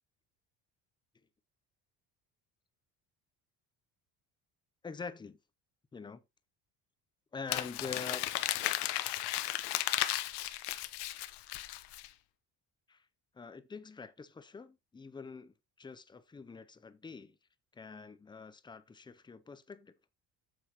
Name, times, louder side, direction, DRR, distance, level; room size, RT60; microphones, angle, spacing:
voice 1, 4.8-5.4 5.9-6.2 7.3-8.3 12.9-13.1 13.3-17.4 17.7-20.0, left 5 dB, 10° left, 0.6 m, -45 dB
Crumpling crinkling, 7.5-12.1, left 15 dB, 80° left, 1.0 m, -34 dB
8.0 x 7.9 x 3.0 m
cardioid pair, 170°, 40 cm